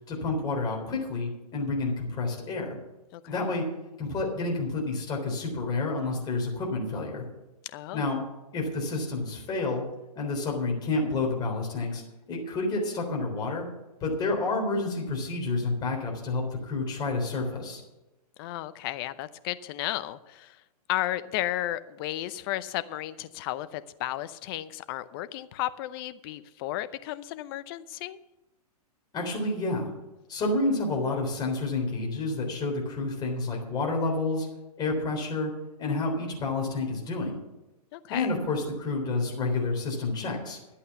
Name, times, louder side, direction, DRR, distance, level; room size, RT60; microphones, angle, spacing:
voice 1, 0.1-2.8 3.3-3.6 4.0-7.2 7.9-8.2 8.5-9.8 10.2-12.0 12.3-13.7 14.0-17.8 29.1-29.9 30.3-34.5 34.8-35.5 35.8-37.4 38.1-40.6, left 3 dB, 20° left, 0 dB, 3.6 m, -29 dB
voice 2, 7.6-8.1 18.4-20.6 20.9-28.2 37.9-38.3, left 14 dB, 35° left, 13 dB, 0.7 m, -34 dB
11.5 x 8.5 x 7.0 m, 0.98 s
hypercardioid pair, 140°, 20 cm